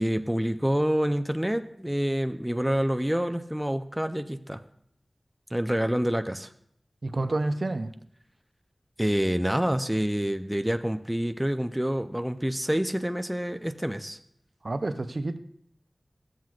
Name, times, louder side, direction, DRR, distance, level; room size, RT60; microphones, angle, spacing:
voice 1, 0.0-4.6 5.5-6.5 9.0-14.2, equal, 10° right, 0.4 m, -27 dB
voice 2, 7.0-7.9 14.6-15.4, right 2 dB, 65° right, 0.5 m, -29 dB
13.0 x 7.6 x 2.4 m
wide cardioid pair, 65°, 0 cm